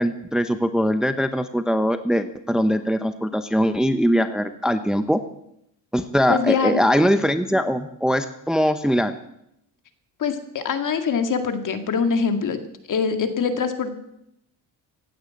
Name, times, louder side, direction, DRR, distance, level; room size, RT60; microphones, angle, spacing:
voice 1, 0.0-5.2 5.9-9.1, equal, ahead, 9 dB, 0.8 m, -21 dB
voice 2, 6.3-6.8 10.2-12.6 12.9-13.9, left 6 dB, 50° left, 7 dB, 2.2 m, -23 dB
16.0 x 10.0 x 8.6 m, 0.79 s
cardioid pair, 110°, 41 cm